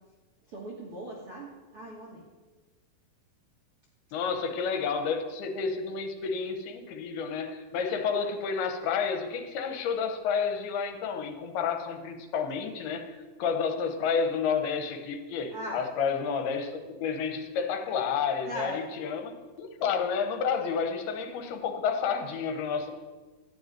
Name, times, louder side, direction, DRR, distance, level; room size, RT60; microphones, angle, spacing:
voice 1, 0.5-2.2 15.5-15.8 18.4-18.8, equal, 50° right, -4 dB, 1.8 m, -38 dB
voice 2, 4.1-13.1 13.4-22.9, left 6 dB, 85° left, 6 dB, 3.1 m, -30 dB
13.0 x 5.5 x 9.1 m, 1.3 s
omnidirectional pair, 4.4 m